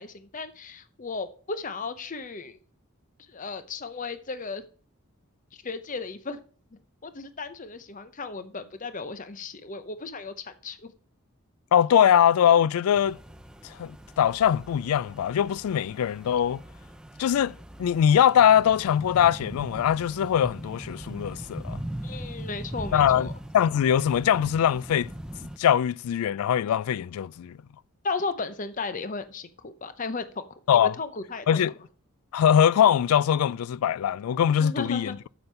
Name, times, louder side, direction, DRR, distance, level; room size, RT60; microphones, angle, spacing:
voice 1, 0.0-2.6 3.3-4.6 5.5-6.4 7.0-10.9 22.0-23.4 28.0-30.5 30.7-31.7 34.6-35.2, left 4 dB, 35° left, 0.7 m, -35 dB
voice 2, 11.7-13.2 13.6-16.6 17.2-17.5 17.8-21.8 22.9-23.3 23.5-25.1 25.6-27.6 30.7-31.0 31.5-31.7 32.3-35.2, left 9 dB, 90° left, 0.3 m, -22 dB
sound 1, 12.9-25.6, right 1 dB, 5° right, 0.5 m, -40 dB
7.8 x 7.1 x 5.6 m
head